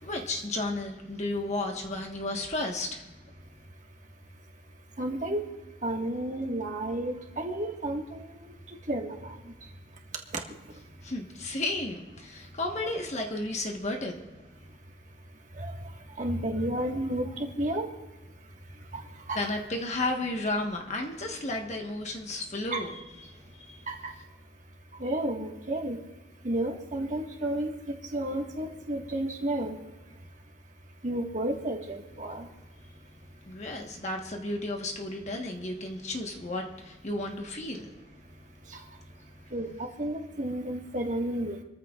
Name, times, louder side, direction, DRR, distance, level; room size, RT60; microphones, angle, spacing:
voice 1, 0.0-3.1 11.0-14.2 19.3-23.9 33.4-38.0, left 2 dB, 40° left, 1 dB, 1.3 m, -33 dB
voice 2, 5.0-5.4 5.8-8.3 8.9-9.4 12.6-12.9 15.6-15.7 16.2-17.8 18.9-19.0 19.3-19.4 22.7-22.8 23.9-24.1 25.0-26.0 26.4-27.7 28.1-29.7 31.0-32.5 38.7-38.8 39.5-39.7 40.0-41.6, right 1 dB, 40° right, 1 dB, 1.7 m, -31 dB
28.0 x 14.0 x 2.4 m, 1.1 s
head